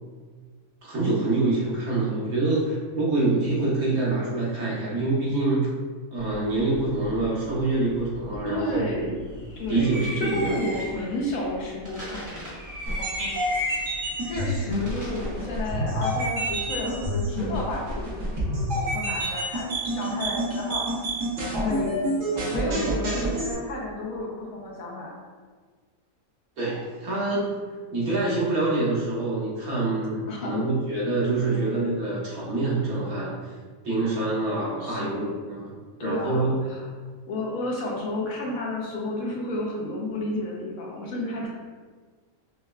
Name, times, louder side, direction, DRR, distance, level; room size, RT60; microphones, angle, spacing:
voice 1, 0.8-5.7 6.1-8.9 9.7-10.6 26.6-27.5 27.9-33.3 33.8-36.5, right 2 dB, 80° right, -7 dB, 1.6 m, -26 dB
sound 1, 6.2-19.2, equal, 15° right, 0.7 m, -39 dB
voice 2, 8.4-9.2 9.6-12.5 14.2-21.0 21.6-22.1 22.5-25.1 30.3-30.6 31.5-32.0 34.8-35.2 35.9-36.9 37.3-41.5, left 1 dB, 75° left, -2 dB, 1.2 m, -31 dB
sound 2, 12.9-23.5, equal, 60° right, 1.2 m, -28 dB
5.3 x 2.2 x 2.3 m, 1.5 s
omnidirectional pair, 1.5 m